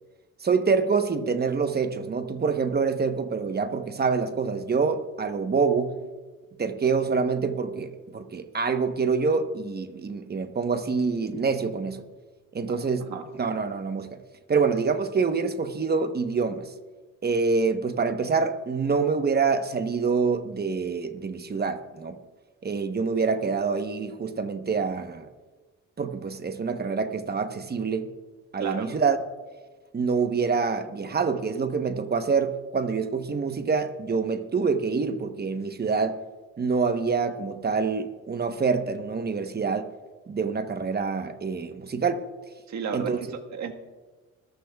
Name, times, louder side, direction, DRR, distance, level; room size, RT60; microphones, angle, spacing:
voice 1, 0.4-6.0 6.6-12.0 12.5-13.1 13.4-14.2 14.5-16.7 17.2-22.2 22.6-25.3 26.0-28.1 28.5-29.2 29.9-36.2 36.6-39.9 40.3-42.2 42.9-43.2, right 5 dB, 30° right, 1.0 m, -26 dB
voice 2, 28.6-28.9 42.7-43.7, right 6 dB, 65° right, 1.6 m, -33 dB
24.0 x 15.0 x 2.3 m
cardioid pair, 90°, 30 cm